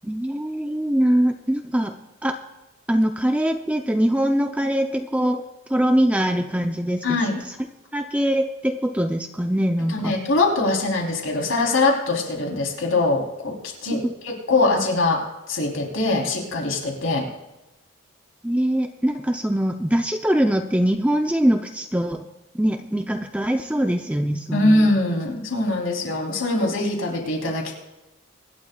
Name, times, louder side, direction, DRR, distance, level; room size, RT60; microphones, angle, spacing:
voice 1, 0.0-2.0 2.2-2.4 2.9-7.2 7.9-10.1 18.4-22.3 22.6-24.9, equal, 5° right, 5 dB, 0.5 m, -22 dB
voice 2, 7.0-7.4 9.9-13.6 13.8-15.2 15.5-17.3 24.5-27.8, left 2 dB, 75° left, 0 dB, 3.4 m, -22 dB
24.5 x 11.5 x 2.3 m, 1.0 s
head